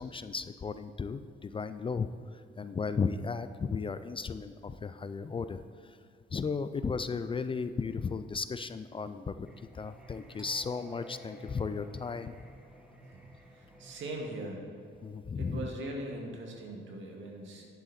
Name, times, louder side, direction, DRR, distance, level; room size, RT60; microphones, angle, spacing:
voice 1, 0.0-6.0 6.3-9.5 9.7-12.4 15.0-15.6, left 5 dB, 25° left, 11 dB, 0.4 m, -35 dB
Singing, 9.4-14.4, equal, 5° right, 1.6 m, -52 dB
voice 2, 13.5-14.6 15.4-17.7, right 1 dB, 70° right, 0 dB, 2.0 m, -40 dB
11.0 x 7.7 x 4.3 m, 2.5 s
cardioid pair, 90°, 20 cm